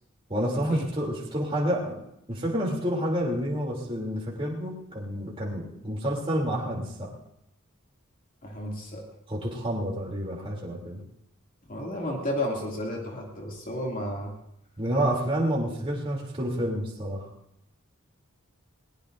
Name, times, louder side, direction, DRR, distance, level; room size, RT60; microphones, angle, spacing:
voice 1, 0.3-2.0 2.3-7.1 9.3-11.0 14.8-17.3, equal, 25° right, -3 dB, 3.1 m, -29 dB
voice 2, 8.4-9.1 11.7-14.3, left 1 dB, 40° left, -2 dB, 2.6 m, -32 dB
21.5 x 19.0 x 2.7 m, 0.79 s
head